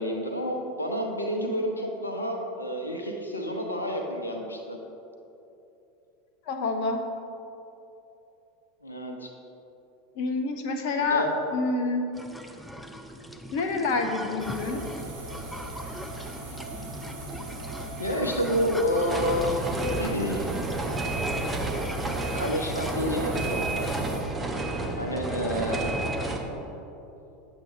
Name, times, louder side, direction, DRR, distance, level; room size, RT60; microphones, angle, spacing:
voice 1, 0.0-4.8 8.8-9.3 11.1-11.3 18.0-19.6 20.0-20.5 22.2-23.9 25.0-26.0, equal, 85° left, 3 dB, 0.9 m, -29 dB
voice 2, 6.5-7.0 10.2-11.3 11.5-12.0 13.5-14.8, left 3 dB, 55° left, 6 dB, 0.6 m, -27 dB
sound 1, 12.1-22.9, equal, ahead, 0.6 m, -41 dB
sound 2, 14.4-24.2, right 1 dB, 60° right, 1.5 m, -38 dB
sound 3, 19.1-26.4, right 2 dB, 15° right, 0.9 m, -30 dB
9.6 x 7.5 x 3.5 m, 2.9 s
figure-of-eight pair, 80°, 0 cm